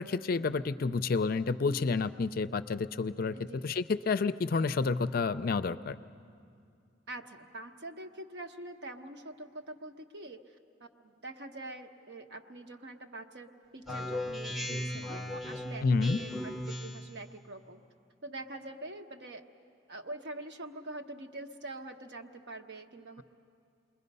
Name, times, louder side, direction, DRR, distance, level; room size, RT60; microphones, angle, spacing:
voice 1, 0.0-3.4 3.6-6.0 15.8-16.2, left 4 dB, 50° left, 12 dB, 0.4 m, -29 dB
voice 2, 7.1-17.8 18.2-19.5 19.9-23.2, right 2 dB, 65° right, 5 dB, 1.0 m, -45 dB
Speech synthesizer, 13.9-17.2, left 1 dB, ahead, 0.8 m, -37 dB
28.5 x 21.0 x 5.4 m, 2.4 s
head